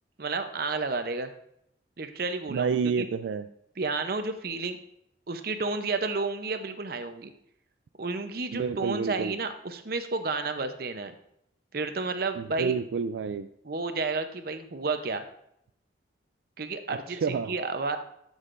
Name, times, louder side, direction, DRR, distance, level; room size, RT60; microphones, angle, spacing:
voice 1, 0.2-1.3 2.0-3.1 3.8-4.8 5.3-7.3 8.0-11.1 11.7-12.8 13.6-15.2 16.6-18.0, right 3 dB, 55° right, 8 dB, 0.7 m, -31 dB
voice 2, 2.5-3.5 8.5-9.3 12.4-13.5 17.1-17.5, right 6 dB, 85° right, 10 dB, 0.3 m, -29 dB
12.5 x 6.4 x 2.6 m, 0.74 s
head